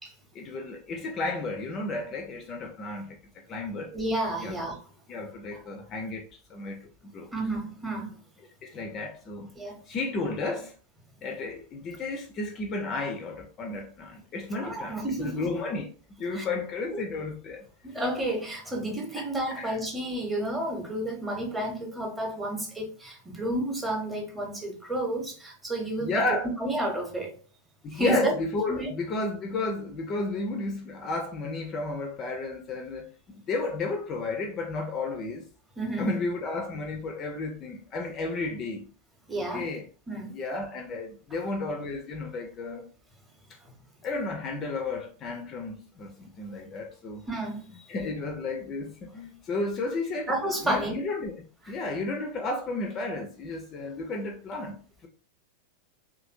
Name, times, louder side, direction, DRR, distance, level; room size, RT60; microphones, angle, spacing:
voice 1, 0.3-3.2 3.5-3.9 4.4-4.6 5.1-7.3 8.6-9.5 9.9-10.7 11.2-15.9 16.2-17.6 19.1-19.3 19.5-19.8 26.0-26.5 27.8-35.5 36.0-38.9 39.5-39.8 40.3-42.8 44.0-47.2 47.9-50.3 50.6-55.1, left 3 dB, 30° left, 0.4 m, -33 dB
voice 2, 3.9-4.8 5.5-5.6 7.3-8.1 9.6-9.8 14.5-15.5 16.3-16.5 16.9-17.0 17.8-26.2 26.6-27.3 27.9-28.3 28.7-28.9 35.8-36.1 39.3-39.7 40.1-40.3 47.3-47.9 50.3-51.0 51.6-51.7, right 1 dB, 10° right, 0.8 m, -31 dB
2.7 x 2.5 x 2.5 m
figure-of-eight pair, 90°, 0 cm